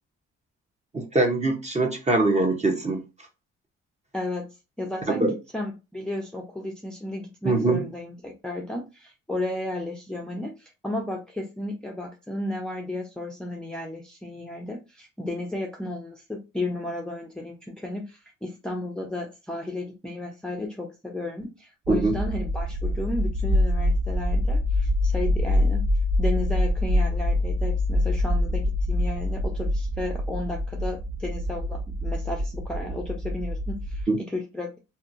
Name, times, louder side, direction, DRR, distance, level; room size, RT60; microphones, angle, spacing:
voice 1, 0.9-3.0 5.1-5.3 7.4-7.9 21.9-22.1 34.1-34.2, right 2 dB, 20° right, 0.9 m, -23 dB
voice 2, 4.1-25.8 26.2-34.8, left 2 dB, 5° left, 0.6 m, -33 dB
sound 1, 21.9-34.0, left 1 dB, 45° right, 0.6 m, -25 dB
2.7 x 2.6 x 2.5 m
cardioid pair, 90°, 30 cm